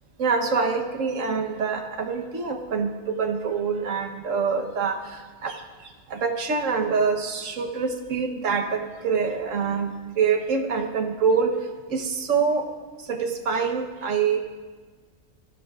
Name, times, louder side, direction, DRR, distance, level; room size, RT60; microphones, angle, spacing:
voice 1, 0.2-5.6 6.1-11.5 11.9-12.7 13.1-14.4, right 5 dB, 70° right, 5 dB, 1.5 m, -25 dB
24.0 x 14.0 x 2.5 m, 1.4 s
omnidirectional pair, 1.4 m